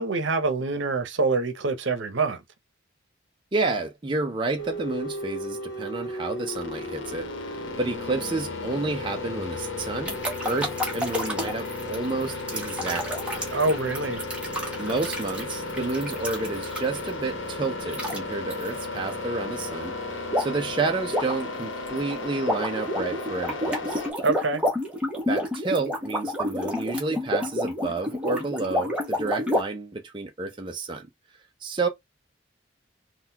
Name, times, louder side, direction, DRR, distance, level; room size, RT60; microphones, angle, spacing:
voice 1, 0.0-2.4 13.5-14.2 24.2-24.6, right 3 dB, 75° right, 0.8 m, -25 dB
voice 2, 3.5-10.2 10.4-13.3 14.8-19.9 20.4-24.0 25.3-31.1 31.6-31.9, right 3 dB, 25° right, 0.5 m, -30 dB
sound 1, 4.6-24.1, left 2 dB, 85° left, 0.9 m, -34 dB
sound 2, 10.1-17.1 17.9-18.2 18.5-18.7 20.3-20.7 21.0-29.6, left 1 dB, 5° right, 1.1 m, -29 dB
3.8 x 2.3 x 2.7 m
head